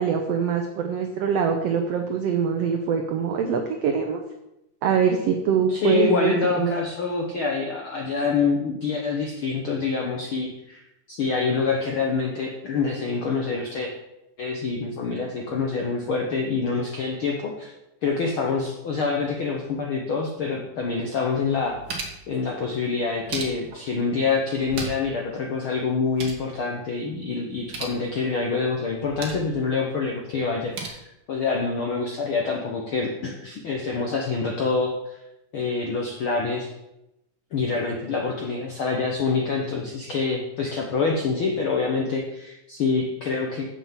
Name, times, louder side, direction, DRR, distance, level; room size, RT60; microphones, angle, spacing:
voice 1, 0.0-4.2 4.8-6.8, right 6 dB, 85° right, 5 dB, 1.4 m, -24 dB
voice 2, 5.7-13.9 14.4-17.7 18.0-21.8 22.3-31.0 31.3-35.2 35.5-36.7 37.5-43.7, left 4 dB, 75° left, 0 dB, 1.2 m, -26 dB
sound 1, 20.9-21.0 21.4-22.3 23.0-23.9 24.5-25.2 25.4-25.5 25.9-26.5 27.5-28.0 28.9-29.5 30.4-30.9, right 4 dB, 50° right, 1.2 m, -36 dB
7.2 x 6.7 x 7.3 m, 0.89 s
omnidirectional pair, 3.8 m